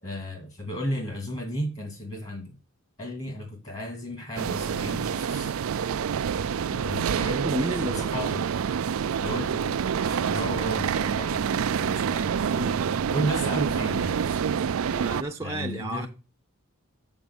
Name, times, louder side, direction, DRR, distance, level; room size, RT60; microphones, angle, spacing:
voice 1, 0.0-2.6 3.0-5.5 6.7-7.5 8.0-8.5 9.2-12.3 12.9-14.4 15.4-16.1, equal, 35° left, 2.3 m, -34 dB
sound 1, 4.4-15.2, right 7 dB, 70° right, 0.4 m, -27 dB
voice 2, 7.4-8.2 12.5-12.8 14.9-16.1, equal, 15° right, 0.7 m, -32 dB
7.0 x 7.0 x 7.0 m
head